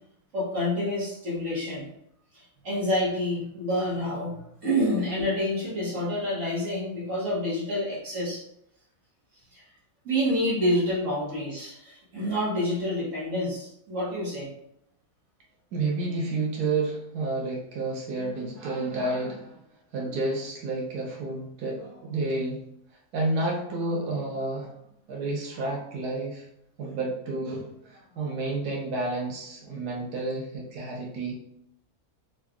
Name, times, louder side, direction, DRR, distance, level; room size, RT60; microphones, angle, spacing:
voice 1, 0.3-1.9 2.3-8.4 9.5-9.6 10.0-14.5, left 1 dB, 55° right, -7 dB, 1.4 m, -28 dB
voice 2, 15.7-19.6 19.9-22.6 23.1-24.8 25.1-26.5 26.8-31.3, right 2 dB, 85° right, -2 dB, 1.3 m, -30 dB
3.8 x 2.3 x 3.5 m, 0.76 s
omnidirectional pair, 1.6 m